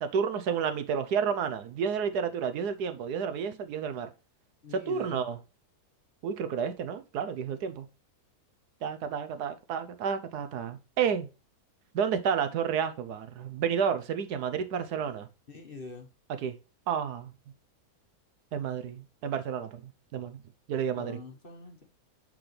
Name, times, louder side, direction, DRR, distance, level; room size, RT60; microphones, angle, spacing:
voice 1, 0.0-4.1 4.7-5.4 6.2-7.9 8.8-11.3 11.9-15.3 16.3-16.5 16.9-17.3 18.5-20.4 20.7-21.2, right 7 dB, 75° right, 1.3 m, -31 dB
voice 2, 4.6-5.3 15.5-16.1 21.0-21.8, left 3 dB, 40° left, 1.1 m, -44 dB
6.6 x 6.1 x 3.2 m
omnidirectional pair, 1.8 m